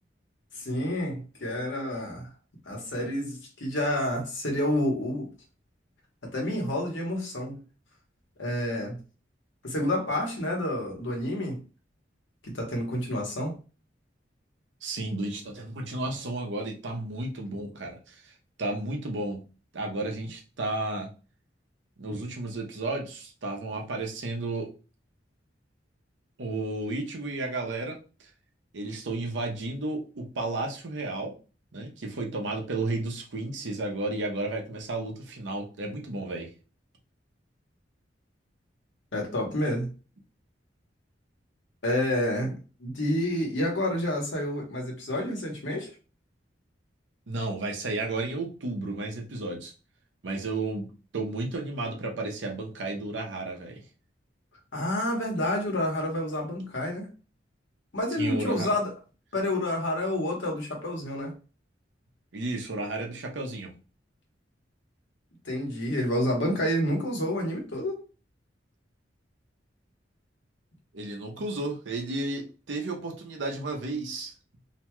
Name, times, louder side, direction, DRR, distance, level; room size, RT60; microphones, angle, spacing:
voice 1, 0.5-2.3 2.7-5.3 6.2-7.6 8.4-9.0 9.6-11.6 12.4-13.5 39.1-39.9 41.8-42.5 42.8-45.9 54.7-57.1 57.9-58.9 59.3-61.3 65.4-68.0, left 1 dB, 85° left, 1.1 m, -29 dB
voice 2, 14.8-18.3 18.6-19.4 19.7-21.1 22.0-24.7 26.4-28.0 28.7-31.3 31.7-36.5 47.3-49.7 50.2-53.8 58.2-58.7 62.3-63.7 70.9-74.3, right 2 dB, 85° right, 0.7 m, -33 dB
2.8 x 2.2 x 3.0 m
head